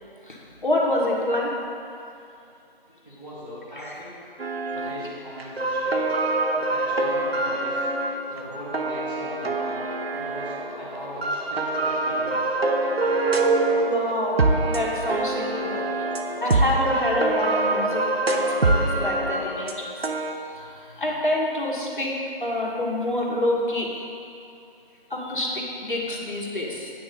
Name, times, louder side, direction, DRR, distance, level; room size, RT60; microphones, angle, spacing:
voice 1, 0.2-1.5 3.8-3.9 13.8-15.8 16.4-19.8 20.5-22.1 22.4-24.0 25.1-26.9, left 1 dB, 55° left, -3 dB, 1.5 m, -27 dB
voice 2, 3.0-4.3 4.7-6.2 6.5-7.9 8.3-9.8 10.1-12.5, equal, 10° right, -17 dB, 1.1 m, -40 dB
sound 1, 4.4-5.1 5.4-10.7 11.2-20.3, right 2 dB, 80° right, 0.8 m, -25 dB
sound 2, 8.7-19.7, equal, 25° left, 0.8 m, -38 dB
9.4 x 3.7 x 6.9 m, 2.6 s
figure-of-eight pair, 165°, 30 cm